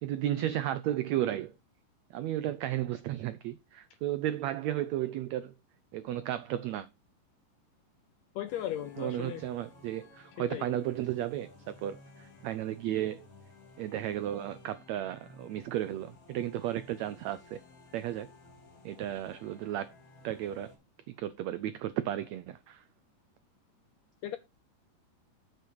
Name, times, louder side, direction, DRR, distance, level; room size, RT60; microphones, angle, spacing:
voice 1, 0.0-1.5 2.1-5.5 5.9-6.9 9.0-13.3 13.8-17.6 17.9-18.3 18.8-19.9 20.2-20.7 21.1-22.8, right 12 dB, 90° right, 1.5 m, -34 dB
voice 2, 8.3-9.4 10.5-10.7 24.2-24.4, left 11 dB, 85° left, 1.5 m, -36 dB
sound 1, 8.5-20.8, left 2 dB, 55° left, 5.1 m, -56 dB
9.0 x 8.0 x 3.8 m
omnidirectional pair, 3.9 m